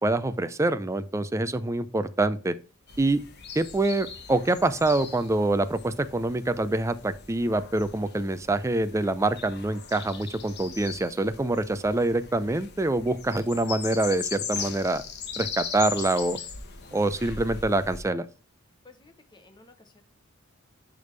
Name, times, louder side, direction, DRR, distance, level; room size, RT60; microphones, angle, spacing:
voice 1, 0.0-2.5 3.0-3.2 3.6-15.0 15.4-16.4 16.9-18.3, right 2 dB, 15° right, 12 dB, 0.4 m, -25 dB
sound 1, 2.9-18.0, left 6 dB, 50° left, 1.0 m, -39 dB
voice 2, 18.8-20.0, left 3 dB, 20° left, 7 dB, 0.9 m, -54 dB
10.5 x 3.5 x 3.2 m, 0.36 s
head